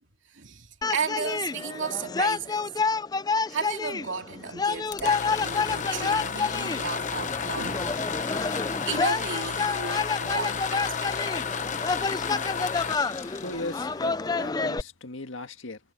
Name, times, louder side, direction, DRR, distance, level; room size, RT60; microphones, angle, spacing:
voice 1, 0.3-2.6 3.5-8.1 8.9-11.3, right 5 dB, 75° right, 2.7 m, -34 dB
sound 1, 0.8-14.8, left 4 dB, 20° left, 0.4 m, -29 dB
sound 2, 4.7-14.5, left 6 dB, 40° left, 1.0 m, -32 dB
voice 2, 13.3-15.8, left 2 dB, 85° left, 1.8 m, -37 dB
head